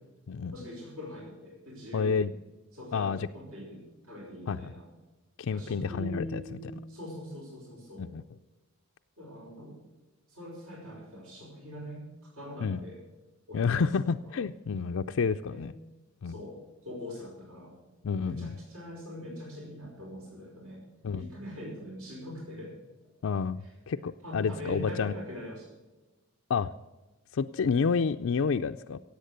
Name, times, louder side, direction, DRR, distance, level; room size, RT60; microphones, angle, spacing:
voice 1, 0.5-2.3 2.7-4.9 5.5-8.1 9.2-9.8 10.3-13.0 13.5-14.3 15.5-15.6 16.2-17.8 18.1-20.8 21.1-22.7 23.6-23.7 24.2-25.7, equal, 70° right, -3 dB, 5.5 m, -43 dB
voice 2, 1.9-2.3 2.9-3.2 4.5-4.7 5.4-6.4 8.0-8.2 12.6-12.8 13.5-15.7 16.2-16.3 18.0-18.5 21.0-21.3 23.2-25.1 26.5-26.7 27.3-29.0, left 5 dB, 65° left, 6 dB, 0.4 m, -29 dB
17.0 x 8.2 x 6.7 m, 1.1 s
head